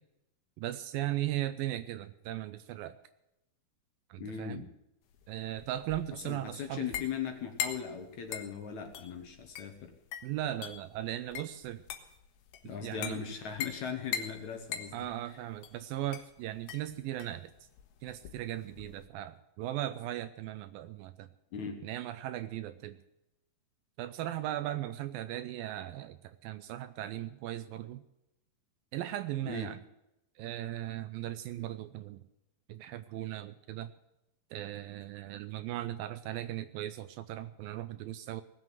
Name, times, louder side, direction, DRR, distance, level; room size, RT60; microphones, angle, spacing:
voice 1, 0.6-3.0 4.1-4.7 5.3-6.9 10.2-11.8 12.6-13.2 14.9-17.5 18.0-21.3 21.8-23.0 24.0-28.0 28.9-29.8 30.4-32.2 32.7-33.9 34.5-38.4, right 13 dB, 80° right, 12 dB, 2.2 m, -38 dB
voice 2, 4.2-4.7 6.2-9.9 12.6-14.9 21.5-21.8 29.4-29.7, left 7 dB, 60° left, 5 dB, 2.2 m, -39 dB
sound 1, 5.1-19.1, left 9 dB, 80° left, 3.2 m, -42 dB
19.0 x 7.8 x 7.5 m, 0.88 s
omnidirectional pair, 4.5 m